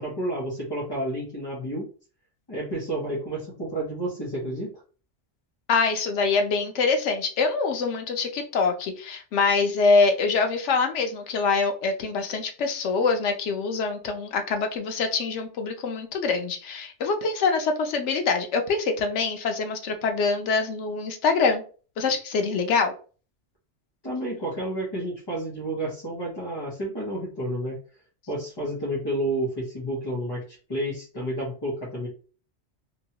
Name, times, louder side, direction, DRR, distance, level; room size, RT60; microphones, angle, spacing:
voice 1, 0.0-1.9 2.5-4.7 24.0-27.7 28.3-32.1, right 1 dB, 25° left, -6 dB, 0.8 m, -30 dB
voice 2, 5.7-21.6 22.0-22.9, left 4 dB, 85° left, 5 dB, 0.9 m, -24 dB
2.9 x 2.3 x 2.7 m, 0.37 s
omnidirectional pair, 1.2 m